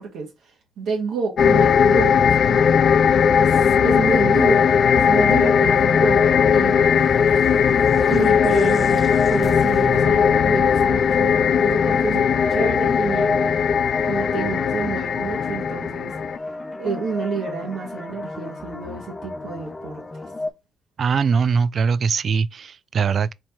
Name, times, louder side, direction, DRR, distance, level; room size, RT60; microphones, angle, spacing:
voice 1, 0.0-2.7 3.4-6.9 7.3-7.5 8.1-13.5 14.0-16.1 16.8-20.3, right 5 dB, 75° right, 1.6 m, -29 dB
sound 1, 1.4-16.4, left 7 dB, 55° left, 0.4 m, -18 dB
sound 2, 3.5-20.5, left 2 dB, 20° left, 0.7 m, -32 dB
sound 3, 6.6-11.9, right 2 dB, 25° right, 0.8 m, -38 dB
voice 2, 21.0-23.3, right 5 dB, 50° right, 0.3 m, -21 dB
4.4 x 2.7 x 4.4 m
cardioid pair, 90°, 0 cm